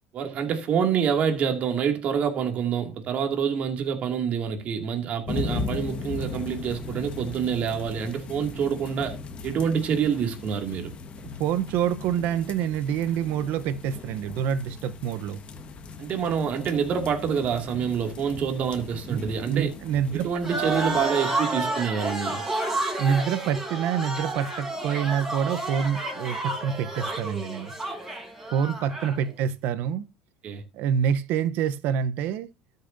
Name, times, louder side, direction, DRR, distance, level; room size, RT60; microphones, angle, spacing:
voice 1, 0.1-9.2 9.4-10.9 16.0-19.7 20.1-22.4 30.4-30.6, right 7 dB, 40° right, 2.4 m, -27 dB
sound 1, 5.3-21.1, left 5 dB, 30° left, 1.5 m, -38 dB
voice 2, 11.4-15.4 19.1-19.2 19.5-20.3 23.0-27.7 28.5-30.1 30.7-32.5, right 8 dB, 60° right, 0.9 m, -26 dB
sound 2, 20.4-29.2, right 2 dB, 10° right, 4.7 m, -30 dB
13.0 x 6.7 x 2.7 m
cardioid pair, 135°, 4 cm